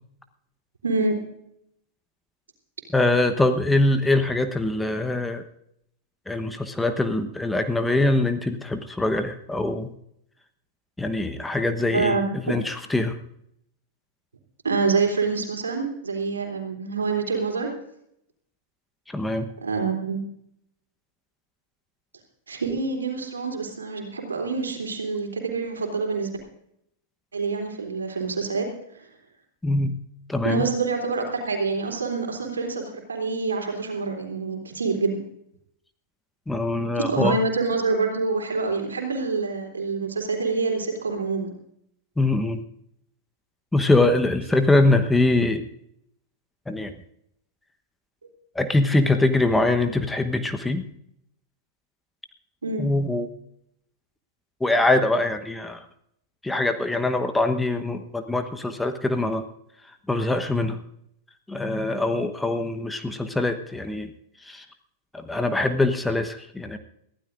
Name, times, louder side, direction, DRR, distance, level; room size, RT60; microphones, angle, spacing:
voice 1, 0.8-1.2 11.9-12.2 14.6-17.7 19.6-20.2 22.5-26.3 27.3-28.7 30.4-35.2 37.0-41.5 52.6-52.8, right 4 dB, 80° right, 2 dB, 3.2 m, -26 dB
voice 2, 2.9-5.4 6.3-9.9 11.0-13.2 19.1-19.5 29.6-30.0 30.3-30.7 36.5-37.4 42.2-42.6 43.7-45.6 46.7-46.9 48.5-50.9 52.8-53.3 54.6-55.8 56.4-59.4 60.1-60.8 61.5-64.1 64.4-64.7 65.1-66.8, left 2 dB, 10° left, 8 dB, 1.0 m, -23 dB
23.0 x 15.5 x 2.5 m, 0.75 s
figure-of-eight pair, 95°, 0 cm